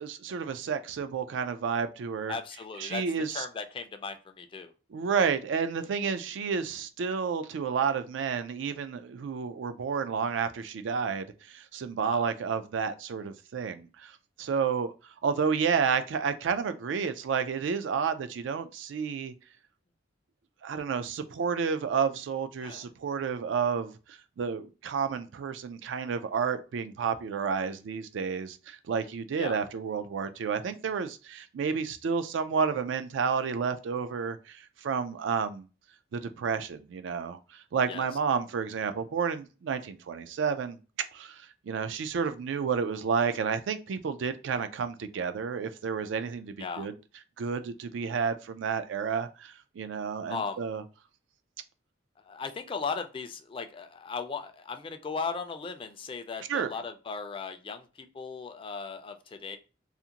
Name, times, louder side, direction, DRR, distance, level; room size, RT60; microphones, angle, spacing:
voice 1, 0.0-2.4 2.8-3.4 4.9-14.1 14.4-14.9 15.2-19.3 20.6-23.9 24.4-35.7 36.1-37.4 37.7-40.8 41.1-46.9 47.4-50.8 56.5-56.7, right 6 dB, 90° right, 0.3 m, -30 dB
voice 2, 2.3-3.0 3.3-4.7 12.0-12.3 22.6-22.9 29.4-29.6 37.9-38.1 46.6-46.9 50.3-50.6 52.2-59.6, left 5 dB, 30° left, 0.3 m, -37 dB
2.5 x 2.4 x 2.8 m
head